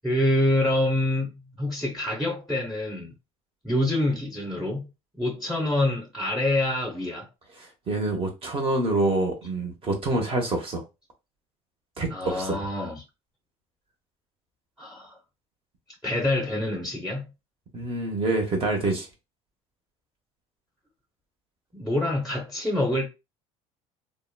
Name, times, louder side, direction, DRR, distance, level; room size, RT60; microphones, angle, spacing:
voice 1, 0.0-1.3 1.6-3.1 3.6-4.9 5.2-7.3 12.1-13.0 14.8-15.2 16.0-17.3 21.7-23.1, left 1 dB, ahead, 0.7 m, -26 dB
voice 2, 7.6-10.8 12.0-12.6 17.7-19.1, right 2 dB, 35° right, 0.9 m, -26 dB
2.8 x 2.1 x 2.2 m
supercardioid pair, 85°, 15 cm